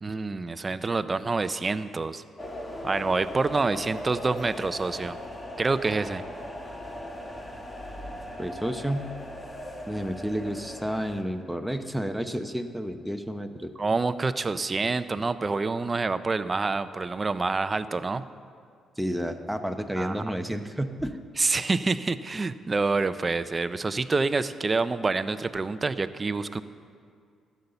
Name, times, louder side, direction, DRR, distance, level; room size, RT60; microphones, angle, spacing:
voice 1, 0.0-2.2 2.8-5.2 5.6-6.2 13.8-18.2 20.0-20.2 21.4-26.6, right 3 dB, 30° right, 12 dB, 0.5 m, -27 dB
sound 1, 2.4-11.2, left 1 dB, 20° left, 1.4 m, -39 dB
voice 2, 8.4-9.1 9.9-13.7 19.0-21.2, equal, 5° right, 6 dB, 0.9 m, -31 dB
13.0 x 8.3 x 6.8 m, 2.2 s
cardioid pair, 90°, 0 cm